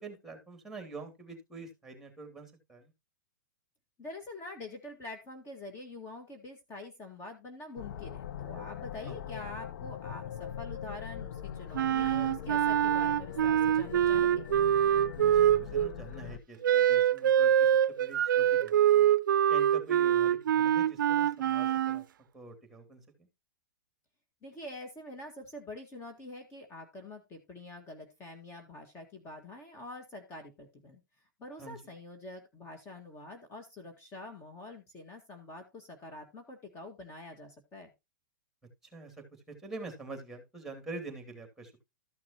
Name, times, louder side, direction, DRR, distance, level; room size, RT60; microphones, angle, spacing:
voice 1, 0.0-2.9 9.1-9.2 15.1-19.1 19.5-22.0 22.3-23.3 31.6-31.9 38.8-41.8, right 3 dB, 5° right, 6 dB, 2.7 m, -46 dB
voice 2, 4.0-14.5 24.4-31.0 31.4-37.9, left 2 dB, 25° left, 5 dB, 1.9 m, -46 dB
sound 1, 7.8-16.4, left 9 dB, 65° left, 0.7 m, -41 dB
Wind instrument woodwind instrument, 11.7-15.9 16.6-22.0, right 10 dB, 75° right, 0.4 m, -25 dB
13.5 x 6.0 x 3.0 m, 0.23 s
hypercardioid pair, 125°, 11 cm